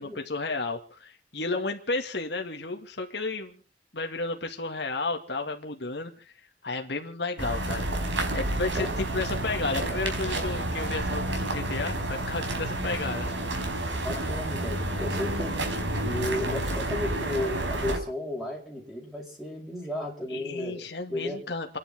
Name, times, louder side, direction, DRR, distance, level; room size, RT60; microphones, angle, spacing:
voice 1, 0.0-3.6 3.9-6.3 6.6-7.9 8.3-13.3 20.3-21.8, left 3 dB, 65° left, 3 dB, 2.1 m, -32 dB
sound 1, 7.4-18.0, right 1 dB, 85° right, 4.9 m, -30 dB
voice 2, 14.0-15.6 16.0-20.8 21.1-21.4, left 1 dB, ahead, 0 dB, 5.9 m, -34 dB
29.5 x 11.0 x 3.7 m, 0.38 s
head